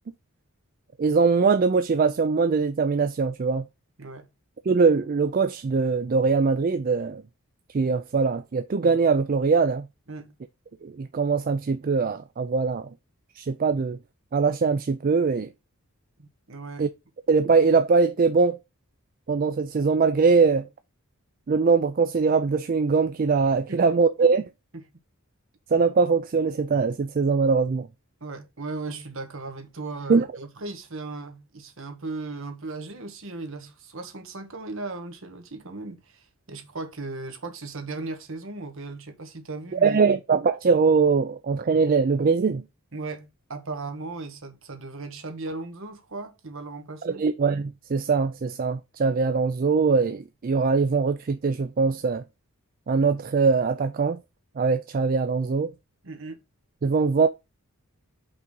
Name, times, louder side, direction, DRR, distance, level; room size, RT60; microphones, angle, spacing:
voice 1, 1.0-3.7 4.7-7.2 7.7-9.9 10.8-12.9 13.3-14.0 14.3-15.5 16.8-16.9 17.3-18.6 19.3-20.7 21.5-24.4 25.7-27.9 30.1-30.3 39.7-42.6 47.0-52.2 52.9-54.2 54.6-55.7 56.8-57.3, right 4 dB, 40° right, 0.4 m, -22 dB
voice 2, 4.0-4.3 10.1-10.3 16.2-16.9 23.7-23.8 24.7-24.8 28.2-40.2 42.9-47.2 56.0-56.4, right 3 dB, 60° right, 1.3 m, -37 dB
5.5 x 3.8 x 5.3 m
head